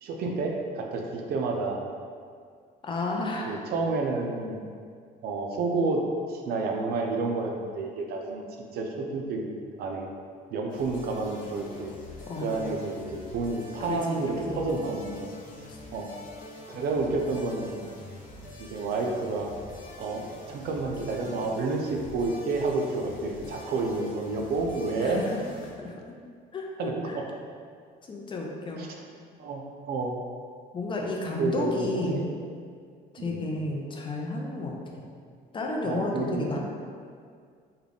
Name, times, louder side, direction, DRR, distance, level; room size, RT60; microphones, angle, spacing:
voice 1, 0.0-1.8 3.5-4.6 5.2-8.4 8.7-9.5 9.8-10.1 10.5-11.9 12.4-15.3 15.9-16.1 16.7-17.7 18.7-19.5 20.0-25.2 26.8-27.2 28.8-28.9 29.4-30.2 31.4-32.3 33.2-33.4 35.8-36.6, right 3 dB, 70° right, 2 dB, 0.5 m, -30 dB
voice 2, 2.8-3.6 12.3-12.6 13.9-14.6 15.7-15.8 25.0-25.4 25.8-26.2 26.5-27.2 28.1-28.8 30.7-32.3 33.1-35.0 35.5-36.6, left 2 dB, 30° left, 0 dB, 0.5 m, -32 dB
sound 1, 10.7-25.7, left 2 dB, 55° left, 0.8 m, -45 dB
3.7 x 2.3 x 3.4 m, 2.1 s
cardioid pair, 110°, 17 cm